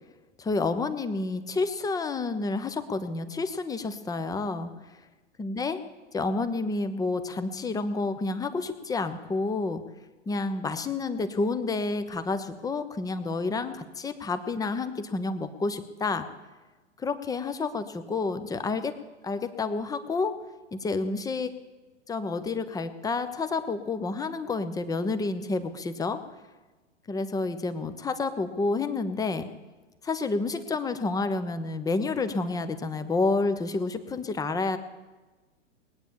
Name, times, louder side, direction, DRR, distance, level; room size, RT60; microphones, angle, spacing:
voice 1, 0.4-4.7 5.4-5.8 6.1-9.8 10.3-16.3 17.0-18.9 19.2-20.3 20.7-21.5 22.1-26.2 27.1-29.5 30.0-34.8, left 3 dB, 10° left, 11 dB, 0.9 m, -29 dB
19.5 x 9.2 x 7.2 m, 1.2 s
hypercardioid pair, 115°, 37 cm